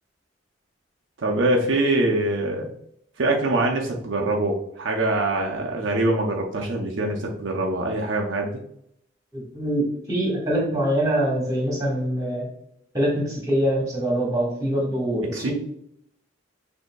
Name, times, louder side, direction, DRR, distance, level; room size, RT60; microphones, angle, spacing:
voice 1, 1.2-2.7 3.2-8.6 15.2-15.5, right 2 dB, 75° right, 0 dB, 0.6 m, -24 dB
voice 2, 9.3-12.5 12.9-15.5, right 1 dB, 20° right, -4 dB, 1.5 m, -24 dB
6.4 x 2.7 x 2.3 m, 0.73 s
head